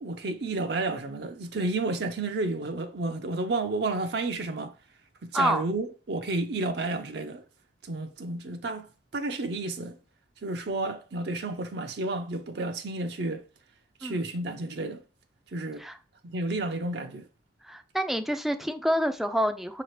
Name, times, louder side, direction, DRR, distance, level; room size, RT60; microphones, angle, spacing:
voice 1, 0.0-4.7 5.2-7.4 7.9-8.9 9.1-10.0 10.4-13.4 14.0-15.0 15.5-15.8 16.2-17.3, right 2 dB, 60° right, 0.5 m, -31 dB
voice 2, 17.6-19.8, equal, ahead, 0.4 m, -27 dB
5.7 x 2.8 x 3.1 m
head